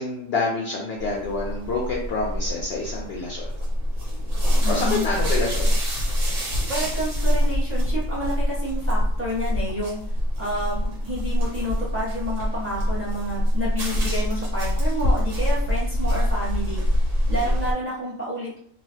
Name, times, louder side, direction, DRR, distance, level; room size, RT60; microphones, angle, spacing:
voice 1, 0.0-3.5 4.7-5.7 17.4-17.5, left 3 dB, 65° left, -2 dB, 0.7 m, -27 dB
sound 1, 1.0-17.7, equal, 70° right, 1.5 m, -25 dB
voice 2, 4.6-5.1 6.7-10.0 10.4-16.8 17.3-18.6, equal, 10° right, -8 dB, 1.1 m, -29 dB
3.0 x 2.4 x 2.7 m, 0.63 s
omnidirectional pair, 1.4 m